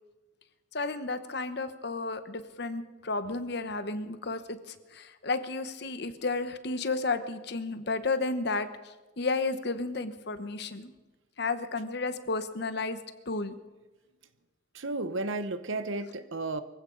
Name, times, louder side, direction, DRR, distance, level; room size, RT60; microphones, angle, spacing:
voice 1, 0.7-10.9 11.4-13.0 13.3-13.5, left 3 dB, 55° left, 10 dB, 1.0 m, -32 dB
voice 2, 14.7-16.6, right 2 dB, 80° right, 12 dB, 1.0 m, -33 dB
24.0 x 15.5 x 3.9 m, 1.2 s
head